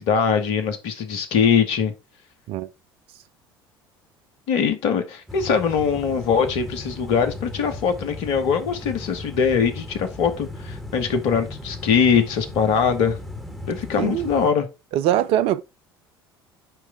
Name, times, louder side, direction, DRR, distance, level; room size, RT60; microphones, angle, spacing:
voice 1, 0.0-1.9 4.5-13.2 13.7-14.7, left 6 dB, 60° left, 1.4 m, -22 dB
sound 1, 5.3-14.5, left 2 dB, ahead, 2.2 m, -36 dB
voice 2, 14.0-14.3 14.9-15.6, right 12 dB, 50° right, 0.6 m, -22 dB
9.3 x 3.3 x 4.7 m
figure-of-eight pair, 60°, 12 cm